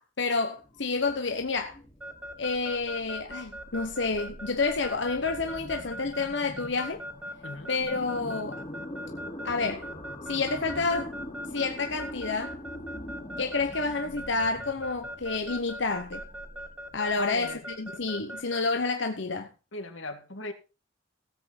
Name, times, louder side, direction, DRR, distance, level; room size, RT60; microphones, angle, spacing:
voice 1, 0.0-1.8 2.4-7.0 7.7-8.6 9.4-9.9 10.3-11.1 11.5-12.6 13.4-16.2 16.9-19.5, left 4 dB, 65° left, 1.1 m, -29 dB
sound 1, 0.6-18.4, left 1 dB, 30° left, 2.3 m, -44 dB
Keyboard (musical) / Alarm, 2.0-18.6, equal, 5° right, 1.9 m, -39 dB
voice 2, 17.2-17.7 19.7-20.5, left 2 dB, 80° left, 2.0 m, -37 dB
17.0 x 8.1 x 4.2 m
head